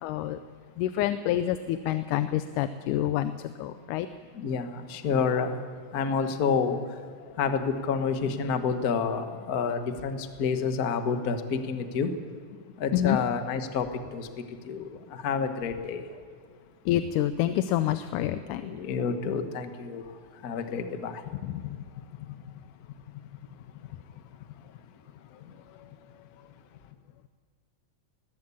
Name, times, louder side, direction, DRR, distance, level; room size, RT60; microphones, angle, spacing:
voice 1, 0.0-0.4 0.8-4.1 12.9-13.2 16.9-18.6 21.4-21.8, left 12 dB, 90° left, 11 dB, 2.2 m, -27 dB
voice 2, 4.3-5.6 5.9-6.8 7.4-12.1 12.8-13.9 14.1-14.3 14.6-16.0 18.5-20.0 20.4-21.2, left 5 dB, 55° left, 7 dB, 1.0 m, -29 dB
20.5 x 15.0 x 8.4 m, 2.1 s
omnidirectional pair, 3.5 m